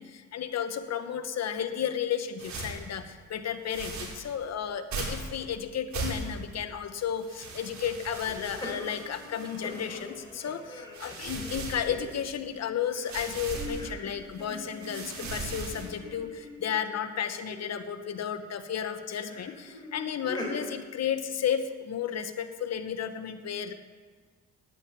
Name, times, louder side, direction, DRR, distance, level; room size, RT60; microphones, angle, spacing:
voice 1, 0.0-23.7, left 8 dB, 60° left, 9 dB, 1.2 m, -33 dB
sound 1, 2.4-2.9 3.7-4.3 4.9-5.3 5.9-6.5 7.2-10.2 10.7-12.4 13.0-13.8 14.3-16.0, right 3 dB, 65° right, 3.5 m, -38 dB
sound 2, 8.3-12.5 12.8-16.9 17.5-18.0 19.1-20.7, left 1 dB, 15° left, 4.8 m, -43 dB
10.5 x 9.6 x 8.7 m, 1.5 s
cardioid pair, 90°, 30 cm